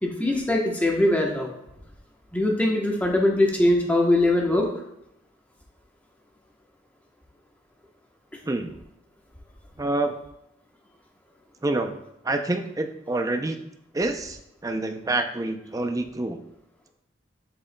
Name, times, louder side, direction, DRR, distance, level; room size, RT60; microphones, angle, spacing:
voice 1, 0.0-1.5 2.3-4.7 8.3-8.4, left 1 dB, 10° left, 0 dB, 1.0 m, -22 dB
voice 2, 9.8-10.2 11.6-12.0 12.2-13.6 13.9-16.4, right 2 dB, 20° right, 6 dB, 0.5 m, -27 dB
7.8 x 6.7 x 2.2 m, 0.82 s
head